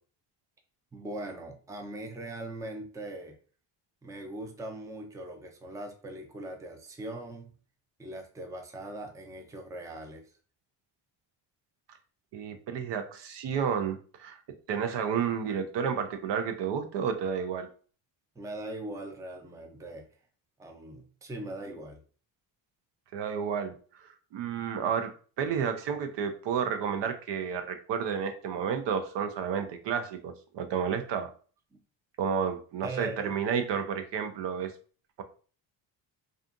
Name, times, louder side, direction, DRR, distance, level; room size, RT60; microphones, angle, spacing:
voice 1, 0.9-3.4 4.0-7.6 8.0-10.3 18.4-20.1 20.6-22.0 31.7-31.8 32.8-33.3, right 1 dB, 5° right, 4 dB, 0.5 m, -40 dB
voice 2, 12.3-14.4 14.7-17.7 23.1-23.7 24.0-31.3 32.2-34.7, right 7 dB, 60° right, 7 dB, 0.6 m, -31 dB
2.5 x 2.4 x 2.5 m, 0.40 s
supercardioid pair, 70°, 50 cm